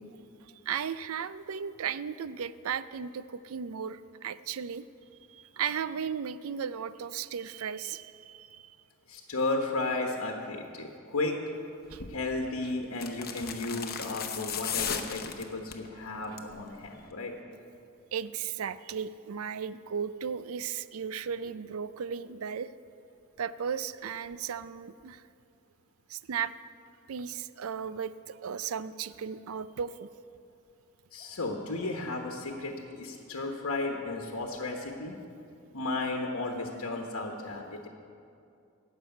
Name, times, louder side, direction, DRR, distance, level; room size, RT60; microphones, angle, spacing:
voice 1, 0.4-4.8 5.3-8.8 11.9-12.0 13.4-13.5 14.9-15.0 15.2-15.5 16.3-16.4 18.1-22.7 23.4-25.2 26.1-26.5 27.1-30.1, right 7 dB, 80° right, 14 dB, 0.4 m, -36 dB
voice 2, 9.1-11.4 12.1-17.3 31.1-35.2 35.7-37.9, left 2 dB, 90° left, 2 dB, 1.1 m, -34 dB
sound 1, 11.9-12.2 12.9-15.9 16.2-16.6 16.9-17.0, left 8 dB, 45° left, 0.9 m, -36 dB
15.0 x 6.2 x 9.2 m, 2.5 s
head